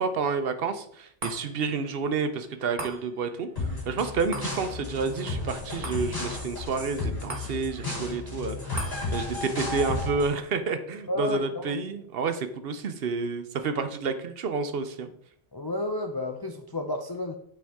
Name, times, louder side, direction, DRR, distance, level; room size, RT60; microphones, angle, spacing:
voice 1, 0.0-15.1, right 5 dB, 65° right, 9 dB, 0.9 m, -30 dB
sound 1, 1.2-13.8 14.2-14.3, right 2 dB, 45° right, 1.6 m, -45 dB
sound 2, 3.6-10.3, left 3 dB, 65° left, 3.1 m, -33 dB
voice 2, 11.1-11.8 15.5-17.4, left 1 dB, 35° left, 4 dB, 0.4 m, -31 dB
8.7 x 4.7 x 3.5 m, 0.66 s
omnidirectional pair, 1.1 m